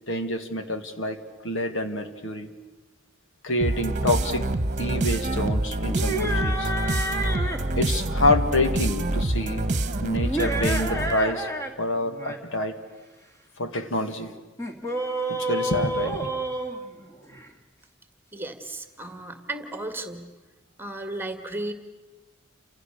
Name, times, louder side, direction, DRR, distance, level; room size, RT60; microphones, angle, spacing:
voice 1, 0.1-1.2 1.4-2.5 3.4-4.5 4.8-6.7 7.7-9.7 10.0-11.5 11.8-12.8 13.6-14.4 15.3-16.3, left 1 dB, 65° left, 7 dB, 2.0 m, -27 dB
sound 1, 3.6-11.3, right 1 dB, 40° right, 1.3 m, -26 dB
sound 2, 5.9-7.7 10.2-11.7 12.0-12.4 14.6-17.5, right 1 dB, 15° left, 2.2 m, -29 dB
voice 2, 18.3-20.3 20.8-21.7, right 2 dB, 10° right, 7 dB, 2.0 m, -34 dB
30.0 x 26.5 x 6.7 m, 1.2 s
head